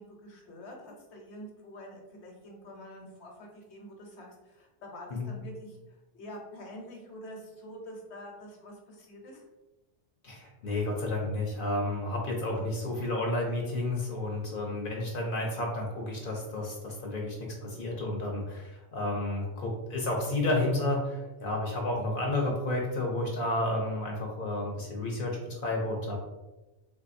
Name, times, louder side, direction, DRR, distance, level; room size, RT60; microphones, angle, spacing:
voice 1, 0.0-9.4, equal, 80° left, 0 dB, 1.1 m, -46 dB
voice 2, 10.2-17.3 17.6-26.2, left 1 dB, 55° left, -1 dB, 0.7 m, -31 dB
3.6 x 2.6 x 2.5 m, 1.1 s
omnidirectional pair, 1.1 m